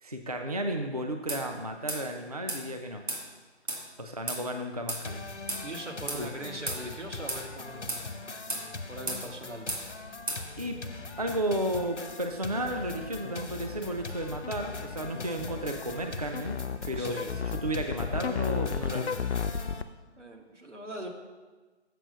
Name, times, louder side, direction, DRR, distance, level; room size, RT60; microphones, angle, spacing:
voice 1, 0.0-3.0 4.0-5.3 6.2-6.3 10.6-16.6 16.9-19.2, right 1 dB, 35° right, 4 dB, 0.4 m, -33 dB
sound 1, 1.3-1.4 1.9-2.0 2.5-2.6 3.1-3.2 3.7-3.8 4.3-4.4 4.9-5.0 5.5-5.6 6.1-6.2 6.7-6.8 7.3-7.4 7.9-8.0 8.5-8.7 9.1-9.2 9.7-9.8 10.3-10.4, right 2 dB, 60° right, 2.2 m, -33 dB
sound 2, 5.0-19.8, left 3 dB, 80° left, 1.0 m, -42 dB
voice 2, 5.6-8.1 8.7-9.7 16.9-17.3 20.2-21.1, right 1 dB, 85° right, 1 dB, 1.7 m, -41 dB
sound 3, 10.2-19.8, left 6 dB, 65° left, 0.5 m, -35 dB
7.6 x 5.4 x 6.7 m, 1.3 s
figure-of-eight pair, 155°, 35 cm